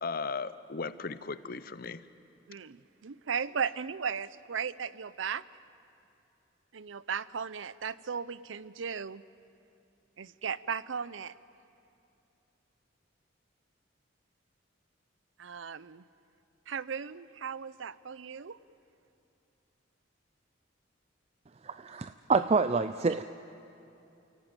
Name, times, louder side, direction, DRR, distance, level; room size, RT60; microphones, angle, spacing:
voice 1, 0.0-2.0, left 4 dB, 50° left, 14 dB, 0.8 m, -36 dB
voice 2, 2.5-5.4 6.7-9.2 10.2-11.3 15.4-16.0 16.7-18.6, right 6 dB, 80° right, 18 dB, 0.6 m, -36 dB
voice 3, 21.6-23.2, right 4 dB, 35° right, 11 dB, 0.5 m, -27 dB
29.5 x 17.0 x 9.0 m, 2.8 s
head